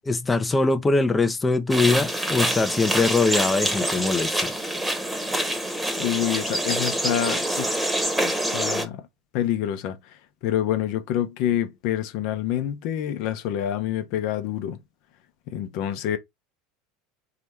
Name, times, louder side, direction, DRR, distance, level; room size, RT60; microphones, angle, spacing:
voice 1, 0.0-4.5, left 3 dB, 20° left, 0.6 m, -22 dB
sound 1, 1.7-8.8, right 1 dB, 5° right, 1.2 m, -26 dB
voice 2, 6.0-7.8 8.2-9.0 9.3-10.0 10.4-14.8 15.5-16.2, left 11 dB, 55° left, 0.9 m, -27 dB
4.2 x 2.9 x 3.3 m
figure-of-eight pair, 75°, 0 cm